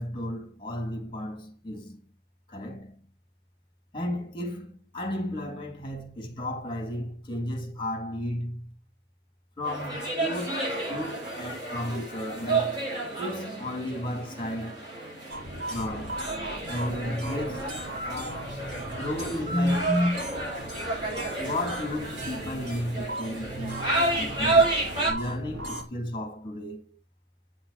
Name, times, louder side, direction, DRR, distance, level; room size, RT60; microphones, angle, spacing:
voice 1, 0.0-2.1 2.5-3.1 3.9-8.8 9.6-12.8 13.2-14.8 15.7-16.2 16.7-18.5 19.0-20.2 21.4-24.7 25.1-27.0, left 1 dB, 30° left, 3.2 m, -33 dB
sound 1, 9.6-25.1, right 3 dB, 25° right, 7.4 m, -30 dB
sound 2, 15.3-25.8, right 1 dB, 70° right, 4.7 m, -38 dB
9.5 x 8.9 x 4.4 m
head